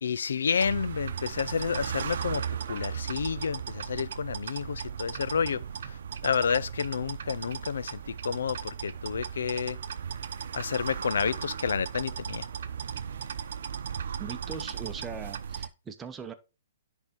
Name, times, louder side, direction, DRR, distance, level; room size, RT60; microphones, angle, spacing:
voice 1, 0.0-6.0 6.2-9.8 10.5-12.5, left 6 dB, 80° left, 0.4 m, -30 dB
sound 1, 0.6-15.7, right 7 dB, 65° right, 0.7 m, -36 dB
voice 2, 14.2-16.3, right 6 dB, 15° right, 0.9 m, -40 dB
10.0 x 3.7 x 4.4 m
hypercardioid pair, 145°, 0 cm